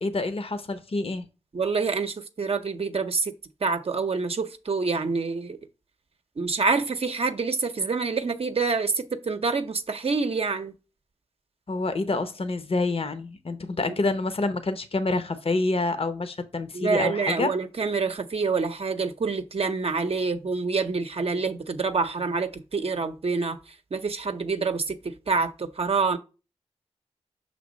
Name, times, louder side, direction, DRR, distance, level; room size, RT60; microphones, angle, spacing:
voice 1, 0.0-1.3 11.7-17.5, left 3 dB, 55° left, 0.8 m, -27 dB
voice 2, 1.5-3.3 3.6-5.6 6.4-10.7 16.7-23.6 23.9-26.2, right 4 dB, 60° right, 0.6 m, -27 dB
6.0 x 3.4 x 5.1 m
cardioid pair, 50°, 11 cm